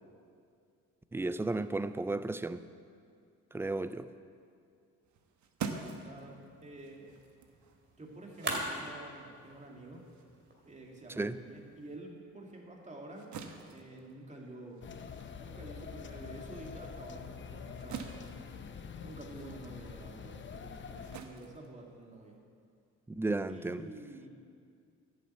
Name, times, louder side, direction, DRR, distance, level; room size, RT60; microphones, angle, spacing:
voice 1, 1.1-2.6 3.5-4.1 11.2-11.4 23.2-23.9, right 2 dB, 10° right, 0.4 m, -33 dB
sound 1, 5.0-11.8 12.2-22.4, right 6 dB, 70° right, 1.1 m, -47 dB
voice 2, 6.0-7.1 8.0-10.1 10.7-13.3 13.7-14.8 15.4-18.1 19.0-22.4 23.5-24.3, right 2 dB, 25° right, 2.3 m, -49 dB
sound 2, 6.1-12.0, right 1 dB, 40° right, 2.6 m, -44 dB
sound 3, 14.8-21.2, left 6 dB, 40° left, 0.8 m, -46 dB
11.0 x 7.6 x 8.2 m
cardioid pair, 90°, 30 cm